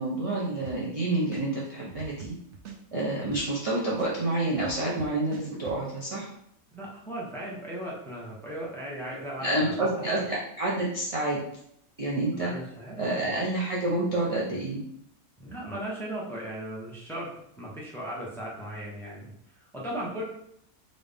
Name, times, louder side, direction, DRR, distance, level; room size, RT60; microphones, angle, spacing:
voice 1, 0.0-2.3 2.9-6.3 9.4-11.4 12.0-12.5 13.0-14.8, right 2 dB, 40° right, -5 dB, 0.5 m, -28 dB
sound 1, 0.7-1.0 1.3-3.7 4.0-5.8, right 6 dB, 65° right, 0.8 m, -43 dB
voice 2, 6.7-10.2 12.4-13.0 15.4-17.3 17.6-20.2, right 1 dB, ahead, -4 dB, 0.6 m, -37 dB
3.9 x 2.6 x 3.4 m, 0.72 s
omnidirectional pair, 1.5 m